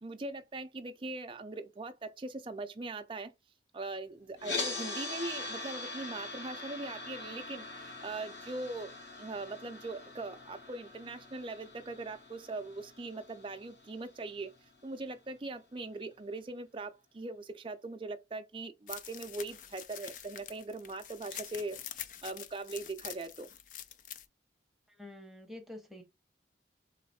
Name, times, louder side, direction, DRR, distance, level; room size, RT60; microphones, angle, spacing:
voice 1, 0.0-3.3 3.7-14.6 14.8-21.8 22.2-23.5, right 2 dB, 30° right, 0.5 m, -41 dB
sound 1, 4.4-14.5, left 3 dB, 80° left, 2.0 m, -42 dB
sound 2, 18.9-24.3, left 10 dB, 45° left, 0.4 m, -46 dB
voice 2, 25.0-26.0, left 1 dB, ahead, 0.9 m, -47 dB
3.9 x 3.2 x 4.1 m
head